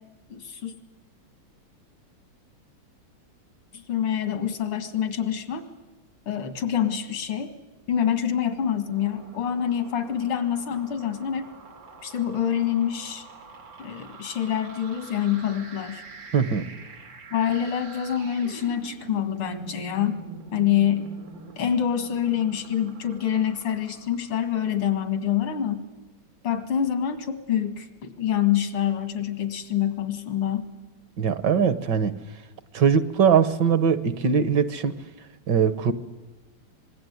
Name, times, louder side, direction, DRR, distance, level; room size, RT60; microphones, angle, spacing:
voice 1, 0.3-0.7 3.7-5.6 6.3-7.5 7.9-11.4 12.0-13.3 13.8-16.0 17.3-20.2 20.5-21.1 21.6-25.9 26.4-30.7, left 9 dB, 80° left, 9 dB, 2.8 m, -26 dB
sound 1, 8.6-24.9, right 4 dB, 90° right, 3.6 m, -45 dB
voice 2, 16.3-16.7 31.2-32.1 32.7-35.0 35.5-35.9, right 7 dB, 60° right, 13 dB, 1.5 m, -21 dB
25.5 x 21.0 x 9.5 m, 1.2 s
omnidirectional pair, 2.4 m